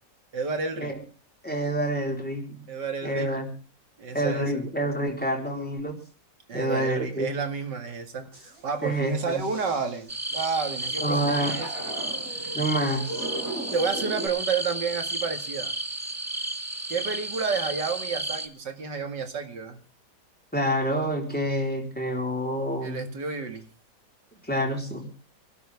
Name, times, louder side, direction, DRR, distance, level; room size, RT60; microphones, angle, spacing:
voice 1, 0.3-0.9 2.7-3.3 4.0-4.5 6.5-11.7 12.4-12.6 13.7-15.7 16.9-19.8 22.8-23.6, right 5 dB, 80° right, 6 dB, 2.8 m, -30 dB
voice 2, 1.4-2.7 3.0-3.5 4.1-6.0 6.5-7.3 8.8-9.4 11.0-11.6 12.5-13.3 20.5-23.1 24.4-25.1, right 1 dB, 5° left, 1 dB, 4.1 m, -27 dB
sound 1, 8.3-10.1 10.8-14.3, right 1 dB, 55° right, 6.6 m, -38 dB
sound 2, 10.1-18.5, right 1 dB, 10° right, 0.9 m, -33 dB
26.0 x 12.5 x 3.6 m, 0.36 s
omnidirectional pair, 1.8 m